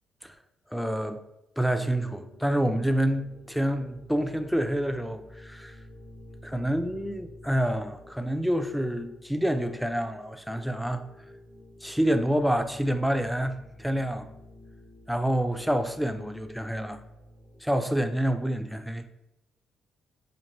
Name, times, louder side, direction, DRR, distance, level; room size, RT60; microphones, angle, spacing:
voice 1, 0.7-1.2 1.6-5.8 6.4-11.0 11.8-14.3 15.1-17.0 17.6-19.1, equal, ahead, 0.3 m, -27 dB
sound 1, 1.7-17.6, equal, 40° left, 0.6 m, -50 dB
4.4 x 2.5 x 3.0 m
cardioid pair, 90°, 0 cm